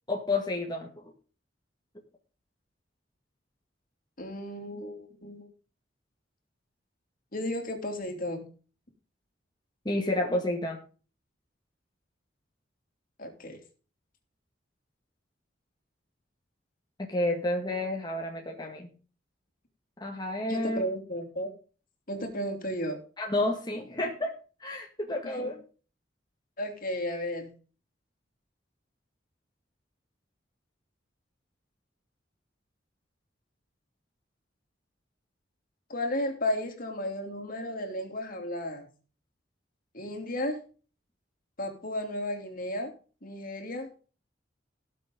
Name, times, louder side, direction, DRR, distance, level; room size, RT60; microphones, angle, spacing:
voice 1, 0.1-0.9 9.9-10.8 17.0-18.9 20.0-20.8 23.2-24.3 24.6-25.6, left 2 dB, 25° left, 1 dB, 2.0 m, -30 dB
voice 2, 4.2-5.5 7.3-8.5 13.2-13.6 20.5-21.5 22.1-23.0 25.2-25.5 26.6-27.5 35.9-38.9 39.9-40.6 41.6-42.9 43.2-44.1, left 1 dB, 50° left, 4 dB, 3.2 m, -34 dB
18.5 x 7.6 x 3.9 m, 0.37 s
head